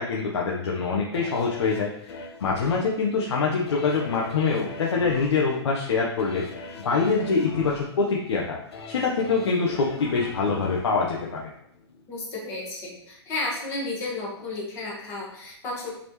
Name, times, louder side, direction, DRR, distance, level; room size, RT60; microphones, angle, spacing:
voice 1, 0.0-8.6 8.9-11.5, left 4 dB, 85° left, -2 dB, 1.1 m, -25 dB
sound 1, 1.1-12.1 12.5-12.6, left 3 dB, 65° left, 1.2 m, -42 dB
voice 2, 12.1-15.9, left 2 dB, 20° left, -3 dB, 1.4 m, -32 dB
8.4 x 4.4 x 3.1 m, 0.75 s
hypercardioid pair, 175°, 14 cm